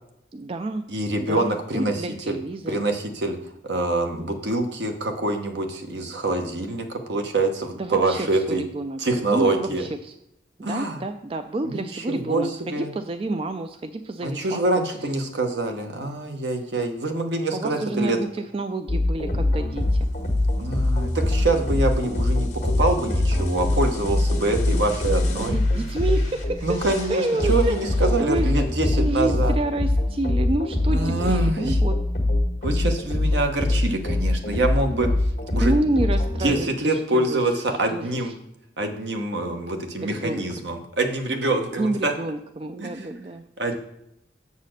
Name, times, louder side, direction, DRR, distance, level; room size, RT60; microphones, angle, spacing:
voice 1, 0.3-0.8 1.2-2.8 7.8-10.1 10.6-14.6 17.5-18.3 18.5-20.1 25.4-26.8 27.1-27.8 28.2-28.5 28.8-32.0 35.6-37.4 37.9-38.3 40.0-40.7 41.8-43.4, right 2 dB, 30° right, 8 dB, 0.3 m, -29 dB
voice 2, 0.9-2.4 2.7-8.6 9.0-9.8 10.6-11.0 11.6-12.9 14.2-18.2 20.6-25.6 26.6-29.5 30.9-31.8 32.6-35.7 36.4-38.3 38.8-42.1 42.8-42.9 43.6-43.8, right 2 dB, 80° right, 5 dB, 1.1 m, -25 dB
sound 1, 18.9-36.5, left 1 dB, 40° left, 1.5 m, -23 dB
7.3 x 4.1 x 6.5 m, 0.82 s
head